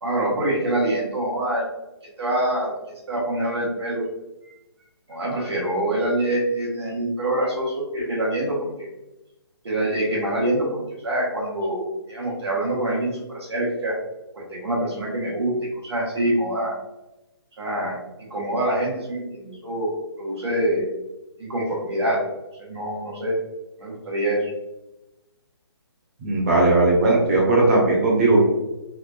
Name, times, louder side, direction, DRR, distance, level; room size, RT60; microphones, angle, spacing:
voice 1, 0.0-1.6 2.2-4.0 5.1-8.7 9.6-14.0 14.3-15.5 15.8-16.7 17.6-20.9 21.4-22.2 22.6-23.4 23.8-24.5, right 1 dB, 75° right, -3 dB, 1.4 m, -25 dB
voice 2, 26.2-28.4, right 2 dB, 35° right, -4 dB, 1.1 m, -18 dB
3.6 x 2.6 x 2.4 m, 0.97 s
hypercardioid pair, 160°, 14 cm